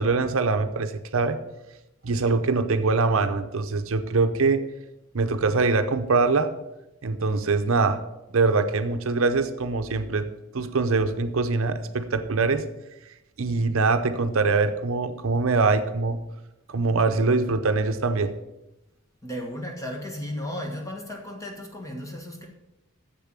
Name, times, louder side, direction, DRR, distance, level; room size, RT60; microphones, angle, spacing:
voice 1, 0.0-1.4 2.0-4.6 5.1-6.5 7.0-8.0 8.3-10.3 10.5-12.6 13.4-16.2 16.7-18.3, right 3 dB, 65° right, 8 dB, 0.7 m, -23 dB
voice 2, 19.2-22.5, left 1 dB, 15° left, 1 dB, 1.5 m, -34 dB
7.5 x 6.9 x 7.5 m, 0.94 s
head